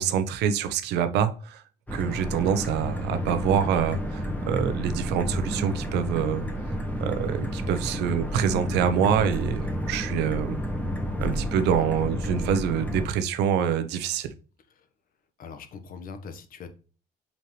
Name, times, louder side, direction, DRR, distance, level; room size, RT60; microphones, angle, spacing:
voice 1, 0.0-1.6 1.9-6.4 7.0-10.6 11.2-14.3, right 8 dB, 85° right, 0.8 m, -26 dB
sound 1, 1.9-13.1, equal, 10° left, 1.6 m, -30 dB
voice 2, 15.4-16.7, left 5 dB, 60° left, 1.2 m, -41 dB
5.7 x 5.6 x 3.2 m
cardioid pair, 110°, 17 cm